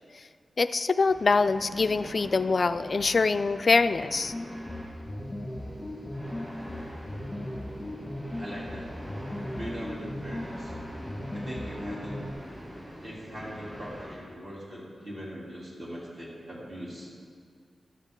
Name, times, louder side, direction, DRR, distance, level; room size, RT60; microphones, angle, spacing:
voice 1, 0.6-4.3, left 4 dB, 40° left, 11 dB, 0.3 m, -24 dB
sound 1, 1.0-14.2, equal, 15° right, 3.3 m, -44 dB
sound 2, 4.3-12.3, left 1 dB, 10° left, 1.3 m, -37 dB
voice 2, 8.4-8.9 9.6-10.7 11.3-12.2 13.0-17.1, equal, 35° right, -6 dB, 2.8 m, -40 dB
13.0 x 11.0 x 3.7 m, 2.2 s
wide cardioid pair, 180°, 0 cm